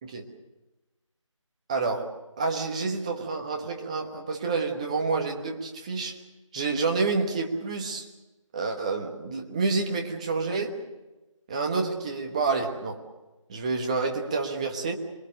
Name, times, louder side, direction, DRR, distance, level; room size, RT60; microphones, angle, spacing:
voice 1, 1.7-2.1 2.4-6.2 6.5-8.1 8.5-10.8 11.5-13.0 13.5-14.9, right 4 dB, 10° right, 3 dB, 1.2 m, -28 dB
27.0 x 22.0 x 6.6 m, 1.1 s
figure-of-eight pair, 170°, 17 cm